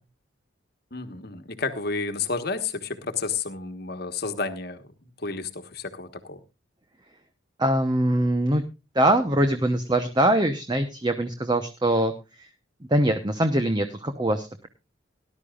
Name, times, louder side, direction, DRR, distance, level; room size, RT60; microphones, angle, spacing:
voice 1, 0.9-6.4, left 4 dB, 50° left, 8 dB, 1.3 m, -31 dB
voice 2, 7.6-8.6 8.9-12.1 12.4-12.5 12.9-14.7, right 1 dB, 20° right, 8 dB, 0.9 m, -23 dB
18.5 x 11.5 x 2.4 m, 0.27 s
head